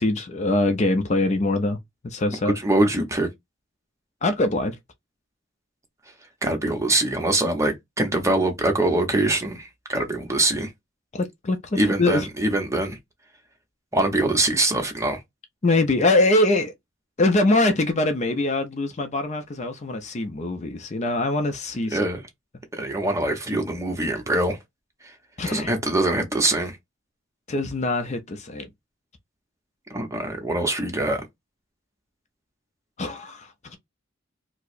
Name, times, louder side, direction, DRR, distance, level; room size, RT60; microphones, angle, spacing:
voice 1, 0.0-1.8 2.0-2.6 4.2-4.8 11.1-12.3 15.6-16.7 17.2-22.0 25.4-25.7 27.5-28.7 33.0-33.8, left 2 dB, 35° left, 0.5 m, -23 dB
voice 2, 2.5-3.3 6.4-10.7 11.8-13.0 13.9-15.2 21.9-22.2 22.8-24.6 25.5-26.8 29.9-31.2, right 2 dB, 15° right, 0.8 m, -23 dB
4.5 x 2.0 x 2.5 m
head